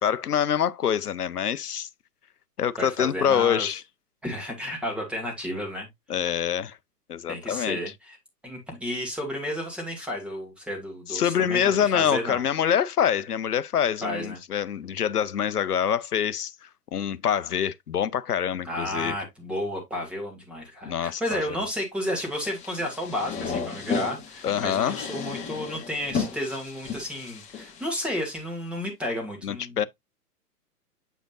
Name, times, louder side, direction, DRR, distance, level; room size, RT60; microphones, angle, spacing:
voice 1, 0.0-1.9 2.6-3.8 6.1-6.8 7.1-7.8 11.1-16.5 16.9-19.2 20.9-21.4 24.4-25.0 29.4-29.8, left 8 dB, 70° left, 0.7 m, -25 dB
voice 2, 2.8-3.8 4.2-5.9 6.2-6.4 7.3-8.2 8.4-12.4 14.0-14.4 18.6-29.8, left 1 dB, ahead, 1.9 m, -32 dB
sound 1, 22.3-28.4, left 5 dB, 15° left, 1.3 m, -34 dB
7.8 x 5.0 x 2.5 m
figure-of-eight pair, 120°, 48 cm